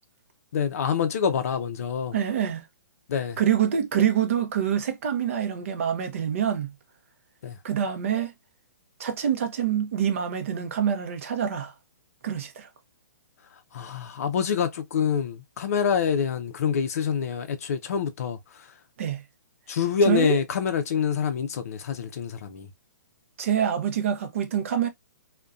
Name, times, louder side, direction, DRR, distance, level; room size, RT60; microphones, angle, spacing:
voice 1, 0.5-2.1 3.1-3.4 7.4-7.6 13.7-18.4 19.7-22.7, left 7 dB, 50° left, 0.5 m, -26 dB
voice 2, 2.1-2.6 3.4-6.7 7.6-8.3 9.0-11.7 12.2-12.7 19.0-19.2 20.1-20.4 23.4-24.9, right 9 dB, 45° right, 0.6 m, -26 dB
2.5 x 2.1 x 2.2 m
hypercardioid pair, 170°, 10 cm